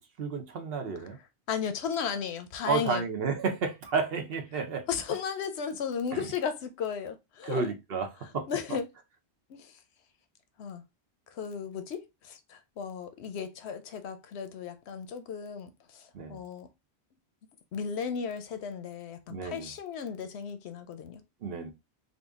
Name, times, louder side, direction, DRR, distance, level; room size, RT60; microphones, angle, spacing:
voice 1, 0.2-1.2 2.7-4.9 6.1-6.3 7.4-8.1 8.3-8.5 16.1-16.4 19.3-19.7 21.4-21.7, right 5 dB, 65° right, 0.9 m, -31 dB
voice 2, 1.5-3.0 4.9-7.6 8.5-8.9 9.5-9.8 10.6-10.8 11.3-16.7 17.7-21.2, left 7 dB, 85° left, 0.9 m, -35 dB
3.8 x 2.2 x 3.5 m
omnidirectional pair, 1.1 m